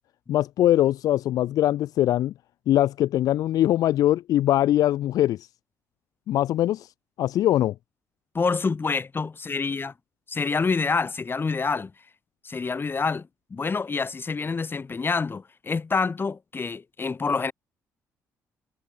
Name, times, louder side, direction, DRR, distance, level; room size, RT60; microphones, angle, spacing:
voice 1, 0.3-2.3 2.7-5.4 6.3-6.9 7.2-7.7, left 13 dB, 70° left, 0.4 m, -22 dB
voice 2, 8.3-9.9 10.3-11.9 12.4-17.5, left 4 dB, 35° left, 7.6 m, -27 dB
supercardioid pair, 75°, 7 cm